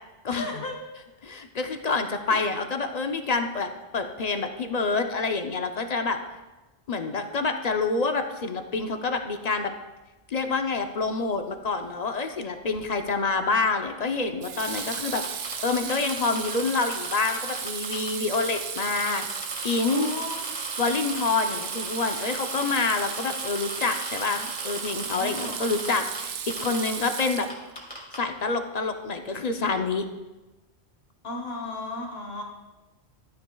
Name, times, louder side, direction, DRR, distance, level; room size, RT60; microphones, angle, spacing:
voice 1, 0.3-0.8 2.3-2.5 19.8-20.5 25.2-25.9 31.2-32.4, left 2 dB, 60° left, 0 dB, 1.6 m, -35 dB
voice 2, 1.2-6.2 6.9-9.7 10.3-19.3 19.6-20.1 20.8-27.5 28.2-30.1, left 4 dB, 45° left, 6 dB, 0.7 m, -27 dB
Water tap faucet / Sink (filling or washing), 12.8-13.1 14.4-27.8, right 7 dB, 80° right, 1.0 m, -35 dB
sound 1, 14.8-18.1 18.3-26.2 26.5-26.9 27.2-27.3 27.5-28.2, equal, 10° left, 2.3 m, -38 dB
13.0 x 9.6 x 2.3 m, 1.1 s
omnidirectional pair, 1.2 m